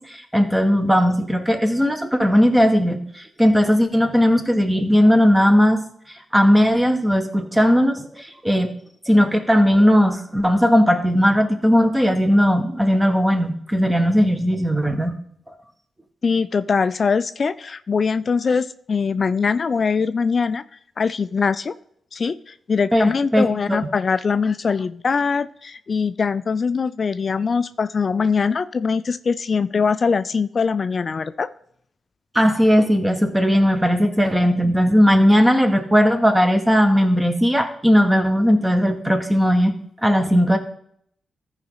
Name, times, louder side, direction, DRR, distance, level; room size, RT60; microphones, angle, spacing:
voice 1, 0.0-5.8 6.3-8.7 9.1-15.2 22.9-23.8 32.3-39.7 40.0-40.6, equal, 15° right, 5 dB, 1.7 m, -17 dB
voice 2, 16.2-20.6 21.0-21.7 22.1-31.5, left 5 dB, 55° left, 13 dB, 0.4 m, -22 dB
14.0 x 4.9 x 4.0 m, 0.67 s
supercardioid pair, 45°, 0 cm